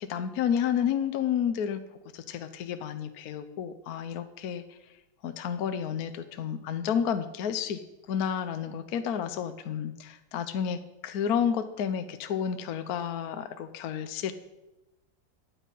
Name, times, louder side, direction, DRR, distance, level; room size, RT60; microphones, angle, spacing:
voice 1, 0.0-1.8 2.1-4.8 5.2-7.8 8.1-14.3, left 8 dB, 60° left, 10 dB, 1.1 m, -31 dB
12.5 x 9.4 x 5.4 m, 0.96 s
omnidirectional pair, 2.1 m